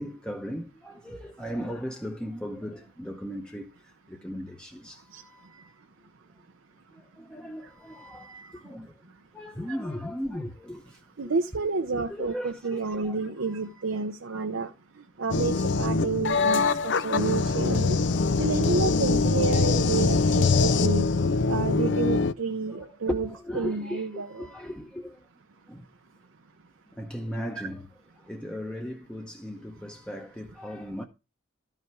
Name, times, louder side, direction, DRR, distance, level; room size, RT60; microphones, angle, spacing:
voice 1, 0.0-5.5 6.9-8.4 8.6-8.9 9.3-11.3 11.9-13.5 16.0-16.1 22.7-25.2 25.7-25.9 26.9-27.9 28.2-31.0, equal, 5° left, 0.8 m, -37 dB
voice 2, 8.2-8.5 11.2-14.7 15.2-18.0 18.3-21.1 21.5-23.3 23.5-24.3 27.6-27.7, right 4 dB, 75° right, 0.7 m, -30 dB
sound 1, 15.3-22.3, left 4 dB, 55° left, 0.5 m, -23 dB
13.0 x 5.8 x 4.6 m
head